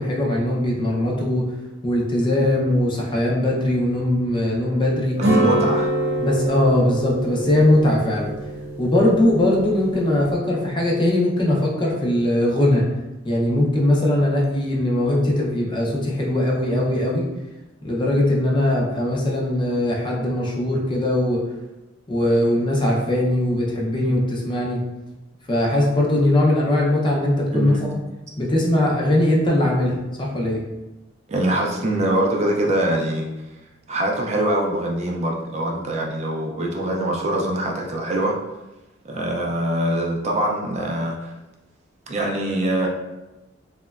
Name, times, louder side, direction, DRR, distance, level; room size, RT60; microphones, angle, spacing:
voice 1, 0.0-1.5 1.8-5.2 6.2-8.3 8.8-12.9 13.2-17.3 17.8-21.4 22.1-24.8 25.5-28.0 28.4-30.6, left 1 dB, 25° left, -3 dB, 0.5 m, -20 dB
sound 1, 5.2-10.4, right 1 dB, 75° right, 0.7 m, -25 dB
voice 2, 5.4-5.9 27.5-27.8 31.3-33.3 33.9-38.4 39.1-41.3 42.1-42.9, right 1 dB, 35° right, -1 dB, 0.3 m, -23 dB
2.9 x 2.1 x 2.3 m, 1.0 s
head